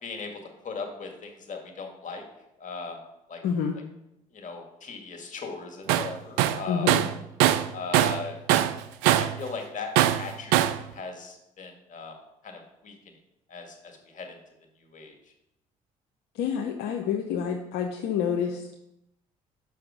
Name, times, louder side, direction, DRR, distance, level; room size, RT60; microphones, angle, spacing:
voice 1, 0.0-2.2 2.6-3.0 3.3-3.4 4.3-6.9 7.7-8.4 8.8-9.9 10.2-12.1 12.4-12.9 13.5-14.3 14.8-15.1, left 4 dB, 50° left, 3 dB, 1.8 m, -38 dB
voice 2, 3.4-3.8 6.7-7.0 16.3-18.8, left 7 dB, 75° left, 2 dB, 0.7 m, -28 dB
Tools, 5.9-6.1 6.4-8.2 8.5-9.4 10.0-10.8, right 13 dB, 80° right, 0.4 m, -22 dB
5.7 x 5.3 x 6.2 m, 0.87 s
hypercardioid pair, 55°, 17 cm